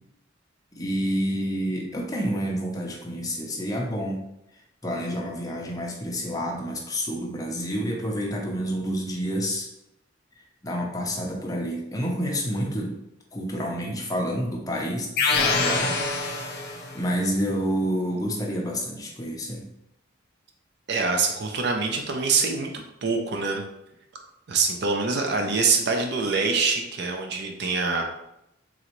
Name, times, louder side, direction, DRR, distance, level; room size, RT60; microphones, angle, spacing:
voice 1, 0.8-4.2 4.8-9.7 10.6-12.9 13.3-15.1 15.4-16.0 16.5-19.6, equal, 20° left, -1 dB, 0.6 m, -28 dB
sound 1, 15.2-17.0, left 3 dB, 55° left, 0.7 m, -25 dB
voice 2, 20.9-22.7 23.0-23.6 24.5-28.0, right 4 dB, 60° right, 3 dB, 0.5 m, -24 dB
3.8 x 3.1 x 3.0 m, 0.84 s
head